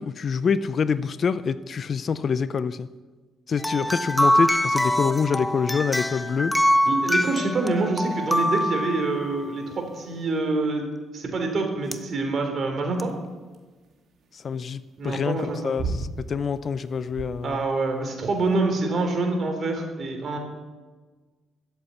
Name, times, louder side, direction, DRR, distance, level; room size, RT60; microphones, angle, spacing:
voice 1, 0.0-2.9 3.5-6.5 14.3-17.7, left 6 dB, 50° left, 14 dB, 0.6 m, -26 dB
sound 1, 3.6-9.6 11.9-12.0 13.0-13.1, equal, 5° left, 0.8 m, -24 dB
voice 2, 6.9-10.9 11.1-13.1 15.0-15.7 17.4-20.4, right 3 dB, 50° right, 4 dB, 3.7 m, -26 dB
sound 2, 13.1-18.6, right 3 dB, 70° right, 2.5 m, -36 dB
14.0 x 7.9 x 8.4 m, 1.3 s
cardioid pair, 90°, 0 cm